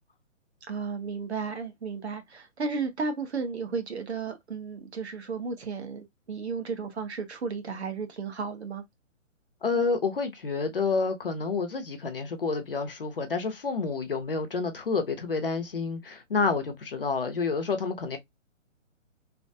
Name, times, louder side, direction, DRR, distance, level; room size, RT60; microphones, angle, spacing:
voice 1, 0.7-8.8, right 5 dB, 55° right, 0.9 m, -34 dB
voice 2, 9.6-18.2, left 4 dB, 45° left, 0.6 m, -29 dB
3.2 x 2.1 x 2.5 m
hypercardioid pair, 180°, 38 cm